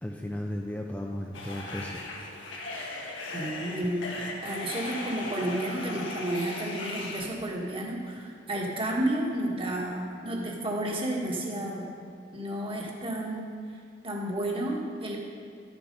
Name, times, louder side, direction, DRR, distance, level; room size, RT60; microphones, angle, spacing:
voice 1, 0.0-2.0, left 1 dB, 10° left, 0 dB, 0.5 m, -35 dB
sound 1, 1.3-7.2, left 2 dB, 85° left, 1.5 m, -38 dB
voice 2, 3.3-4.1 4.4-11.9 12.3-13.5 14.0-15.2, right 1 dB, 30° right, -1 dB, 1.5 m, -31 dB
12.0 x 7.0 x 5.3 m, 2.5 s
head